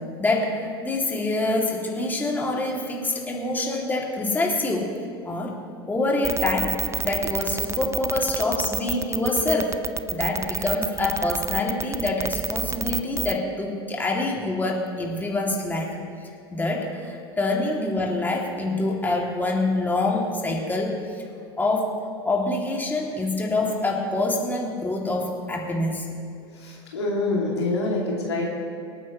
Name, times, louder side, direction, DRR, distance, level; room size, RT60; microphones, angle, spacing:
voice 1, 0.2-4.9 5.2-5.6 5.9-9.8 10.1-15.9 16.5-21.2 21.6-21.9 22.2-26.1, left 2 dB, 15° left, -1 dB, 2.6 m, -26 dB
sound 1, 6.2-13.4, right 6 dB, 20° right, 0.5 m, -28 dB
voice 2, 26.5-28.4, left 2 dB, 85° left, -3 dB, 2.5 m, -26 dB
24.5 x 9.1 x 3.2 m, 2.5 s
hypercardioid pair, 85°, 14 cm